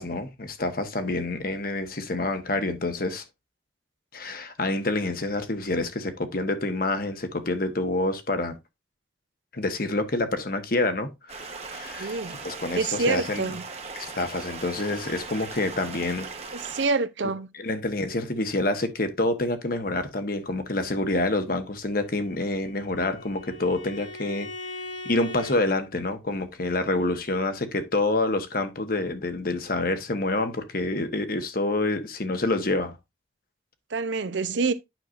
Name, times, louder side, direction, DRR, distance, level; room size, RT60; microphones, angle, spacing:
voice 1, 0.0-3.2 4.1-8.5 9.5-13.5 13.9-16.3 17.5-24.5 25.0-33.0, left 2 dB, 50° left, 1.1 m, -27 dB
Stream, 11.3-16.9, right 4 dB, 35° right, 1.1 m, -39 dB
voice 2, 12.0-12.4 12.7-13.6 16.5-17.5 33.9-34.7, right 4 dB, 70° right, 0.7 m, -26 dB
Bowed string instrument, 22.0-25.6, left 2 dB, 70° left, 3.4 m, -40 dB
9.1 x 6.5 x 2.5 m
head